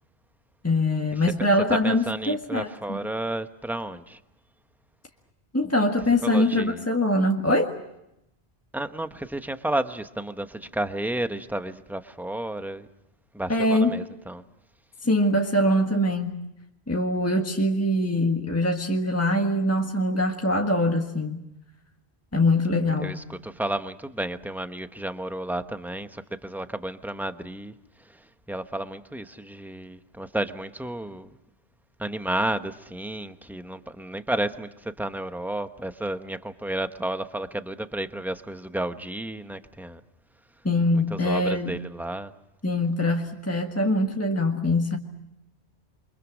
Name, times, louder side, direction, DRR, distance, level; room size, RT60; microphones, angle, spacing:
voice 1, 0.6-3.0 5.5-7.7 13.5-14.0 15.0-16.4 16.9-21.4 22.3-23.2 40.6-41.8 42.6-45.0, left 1 dB, 15° left, 1.6 m, -23 dB
voice 2, 1.7-4.2 6.2-6.9 8.7-12.9 13.3-14.4 23.0-27.7 28.0-31.3 32.0-40.0 41.1-42.3, right 1 dB, ahead, 0.9 m, -32 dB
28.5 x 25.5 x 6.3 m
omnidirectional pair, 1.1 m